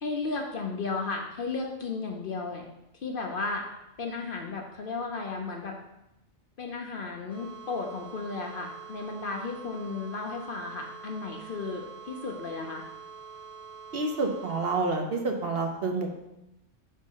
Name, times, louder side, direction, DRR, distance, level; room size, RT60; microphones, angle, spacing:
voice 1, 0.0-2.7 2.9-3.6 4.0-5.8 6.6-12.8, left 4 dB, 55° left, 2 dB, 0.8 m, -34 dB
sound 1, 7.3-14.8, right 6 dB, 20° left, 0.7 m, -45 dB
voice 2, 13.9-16.1, right 3 dB, 55° right, 2 dB, 0.9 m, -28 dB
5.1 x 3.7 x 5.5 m, 0.89 s
omnidirectional pair, 1.3 m